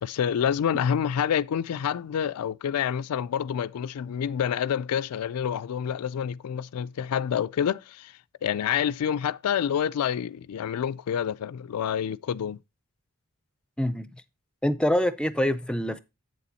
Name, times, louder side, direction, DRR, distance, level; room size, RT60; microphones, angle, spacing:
voice 1, 0.0-12.6, left 8 dB, 90° left, 0.3 m, -28 dB
voice 2, 13.8-14.1 14.6-16.0, left 1 dB, 5° left, 0.4 m, -25 dB
8.2 x 7.0 x 4.1 m
head